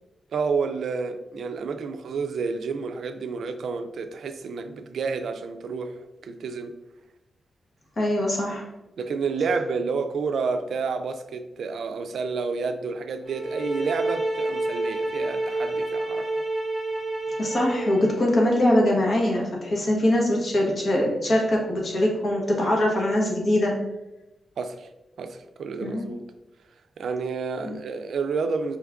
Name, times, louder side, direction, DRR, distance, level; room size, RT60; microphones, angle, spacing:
voice 1, 0.3-5.9 6.2-6.7 9.0-16.3 24.6-24.9 25.2-26.2 27.0-28.8, right 4 dB, 80° right, 8 dB, 0.3 m, -30 dB
voice 2, 8.0-8.7 17.4-23.8 25.8-26.1 27.6-27.8, left 1 dB, 45° left, -1 dB, 1.2 m, -22 dB
sound 1, 13.3-18.2, right 2 dB, 20° right, 1.1 m, -29 dB
5.0 x 2.4 x 3.4 m, 0.95 s
wide cardioid pair, 125°, 0 cm